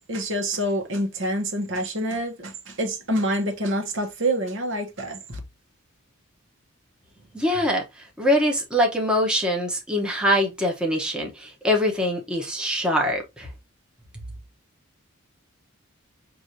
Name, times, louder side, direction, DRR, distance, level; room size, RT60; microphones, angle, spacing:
voice 1, 0.1-5.4, right 1 dB, 60° right, 1.2 m, -27 dB
voice 2, 7.3-13.5, equal, 5° right, 1.0 m, -23 dB
6.1 x 2.6 x 2.8 m
head